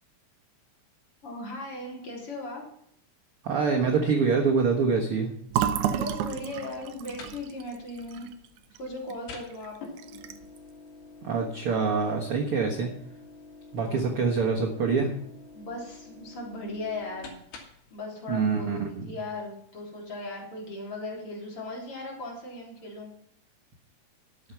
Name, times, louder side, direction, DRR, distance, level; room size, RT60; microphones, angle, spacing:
voice 1, 1.2-2.6 5.9-8.3 8.8-9.8 13.9-14.2 15.5-17.3 17.9-23.1, left 2 dB, 35° left, -2 dB, 4.2 m, -37 dB
voice 2, 3.4-5.3 11.2-12.9 13.7-15.1 18.3-19.1, right 5 dB, 60° right, 0 dB, 1.4 m, -25 dB
Fill (with liquid), 5.5-9.2 9.5-9.7 10.0-10.6, right 9 dB, 90° right, 1.7 m, -31 dB
sound 1, 6.8-17.9, left 4 dB, 75° left, 4.0 m, -48 dB
13.0 x 7.5 x 5.8 m, 0.70 s
omnidirectional pair, 4.6 m